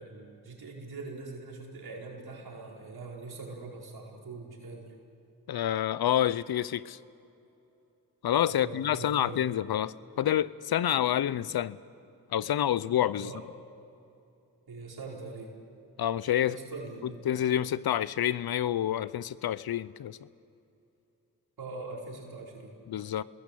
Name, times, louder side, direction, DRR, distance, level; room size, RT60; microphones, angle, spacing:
voice 1, 0.0-4.9 8.5-9.4 13.2-13.5 14.7-15.5 16.4-17.3 21.6-22.8, right 3 dB, 80° right, -1 dB, 4.9 m, -42 dB
voice 2, 5.5-7.0 8.2-11.8 12.3-13.3 16.0-16.6 17.2-20.2 22.9-23.2, left 11 dB, 80° left, 18 dB, 0.7 m, -28 dB
27.0 x 21.5 x 8.4 m, 2.8 s
cardioid pair, 45°, 37 cm